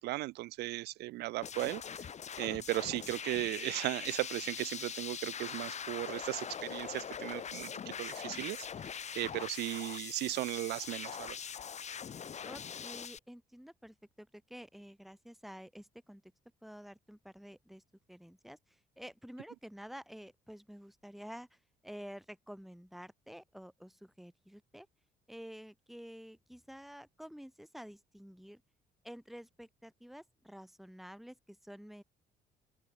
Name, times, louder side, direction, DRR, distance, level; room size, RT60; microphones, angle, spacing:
voice 1, 0.0-2.1 2.3-11.4, right 19 dB, 80° right, 0.9 m, -37 dB
sound 1, 1.4-13.2, left 7 dB, 40° left, 5.1 m, -42 dB
voice 2, 12.4-16.2 16.6-17.8 18.1-24.9 25.3-28.6 29.0-32.0, equal, ahead, 3.5 m, -50 dB
open air
cardioid pair, 110°, 17 cm